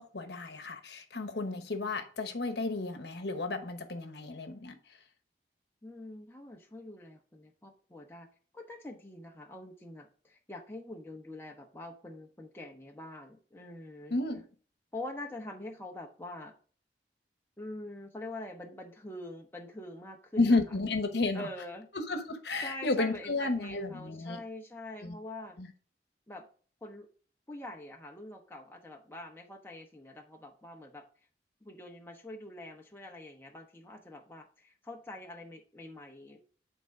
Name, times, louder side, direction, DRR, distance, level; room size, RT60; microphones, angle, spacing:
voice 1, 0.0-4.8 14.1-14.4 20.4-21.5 22.0-24.4 25.0-25.1 25.6-25.7, left 3 dB, 75° left, 1.0 m, -32 dB
voice 2, 5.8-8.3 8.5-14.2 14.9-16.5 17.6-20.6 21.3-21.9 22.6-25.6 26.3-26.5 26.8-27.1 27.5-31.0 31.6-36.4, left 1 dB, 15° left, 1.0 m, -45 dB
9.1 x 3.9 x 4.8 m
head